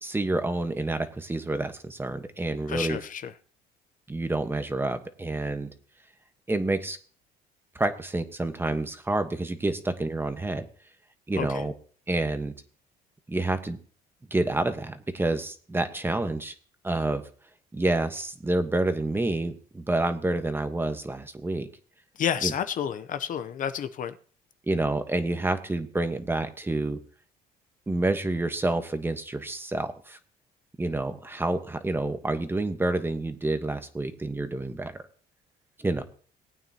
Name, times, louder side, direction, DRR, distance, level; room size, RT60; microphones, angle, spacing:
voice 1, 0.0-3.0 4.1-5.7 6.5-7.0 7.7-10.7 11.3-11.7 12.1-12.5 13.3-13.8 14.3-16.5 16.8-17.2 17.7-21.7 22.4-22.5 24.7-27.0 27.9-30.2 30.8-34.9 35.8-36.0, right 2 dB, 15° right, 8 dB, 1.3 m, -28 dB
voice 2, 2.7-3.3 11.4-11.6 22.2-24.1, left 8 dB, 50° left, 11 dB, 0.8 m, -30 dB
19.0 x 9.0 x 2.9 m, 0.42 s
cardioid pair, 110°, 17 cm